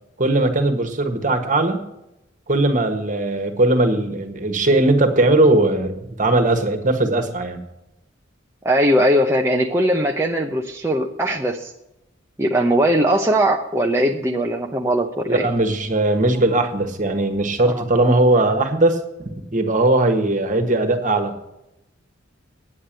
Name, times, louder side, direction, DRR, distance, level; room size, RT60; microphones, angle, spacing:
voice 1, 0.2-1.8 2.5-7.6 15.3-19.0 19.5-21.3, right 2 dB, 40° right, 6 dB, 1.5 m, -19 dB
voice 2, 8.6-11.7 12.4-15.5 17.6-17.8, right 1 dB, 15° right, 1 dB, 0.7 m, -20 dB
9.6 x 8.5 x 7.5 m, 0.88 s
head